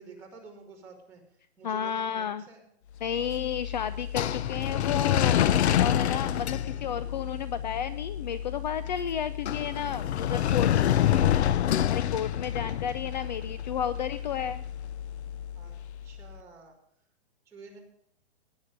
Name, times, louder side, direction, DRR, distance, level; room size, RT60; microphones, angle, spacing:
voice 1, 0.0-2.6 6.5-7.1 10.3-11.4 15.5-15.7 16.0-16.7 17.4-17.8, right 4 dB, 10° right, -7 dB, 3.3 m, -49 dB
voice 2, 1.6-2.4 3.0-10.7 11.9-14.6, left 9 dB, 45° left, 14 dB, 0.5 m, -32 dB
sound 1, 3.0-16.1, left 10 dB, 85° left, 0.7 m, -28 dB
17.5 x 9.8 x 5.1 m, 0.69 s
hypercardioid pair, 175°, 33 cm